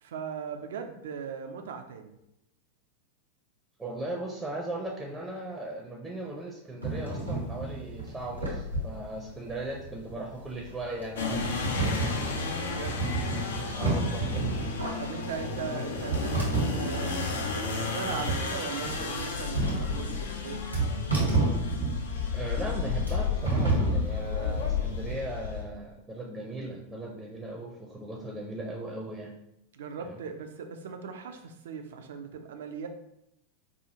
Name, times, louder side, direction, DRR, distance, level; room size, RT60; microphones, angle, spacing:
voice 1, 0.0-2.2 12.6-13.0 15.0-20.7 29.7-32.9, right 6 dB, 60° right, 6 dB, 0.4 m, -39 dB
voice 2, 3.8-11.5 13.7-14.4 17.3-17.4 22.3-29.3 30.0-30.2, right 1 dB, 10° right, -1 dB, 0.6 m, -38 dB
sound 1, 6.8-25.1, right 2 dB, 90° right, 1.3 m, -31 dB
sound 2, 11.2-25.6, left 5 dB, 65° left, 0.5 m, -33 dB
4.9 x 2.4 x 2.8 m, 0.83 s
figure-of-eight pair, 90°, 0 cm